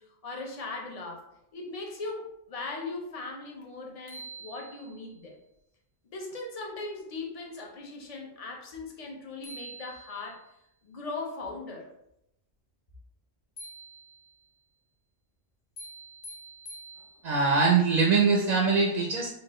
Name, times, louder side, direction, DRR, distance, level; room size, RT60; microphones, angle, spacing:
voice 1, 0.0-5.4 6.0-10.4 10.8-11.9, left 3 dB, 40° left, 0 dB, 0.7 m, -39 dB
sound 1, 3.6-3.7 4.1-5.2 9.1-9.2 9.4-10.5 13.6-14.5 15.8-17.5, right 2 dB, 75° left, 1.1 m, -46 dB
voice 2, 17.2-19.3, right 4 dB, 55° right, 0 dB, 0.5 m, -23 dB
4.0 x 2.5 x 3.0 m, 0.79 s
omnidirectional pair, 1.1 m